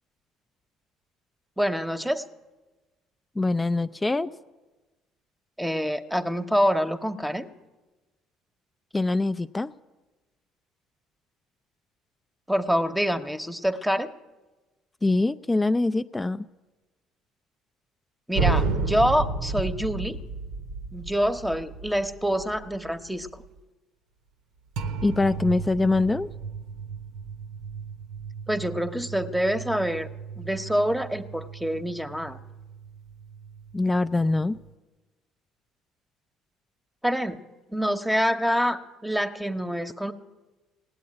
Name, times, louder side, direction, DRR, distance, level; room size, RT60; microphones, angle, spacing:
voice 1, 1.6-2.2 5.6-7.5 12.5-14.1 18.3-20.2 20.9-23.3 28.5-30.1 30.4-32.4 37.0-37.4 37.7-40.1, equal, 5° right, 8 dB, 1.0 m, -26 dB
voice 2, 3.4-4.3 8.9-9.7 15.0-16.5 25.0-26.3 33.7-34.6, left 2 dB, 20° left, 11 dB, 0.4 m, -24 dB
sound 1, 18.3-23.5 24.8-34.7, right 4 dB, 75° right, 0.9 m, -33 dB
17.0 x 8.4 x 9.8 m, 1.2 s
hypercardioid pair, 65°, 0 cm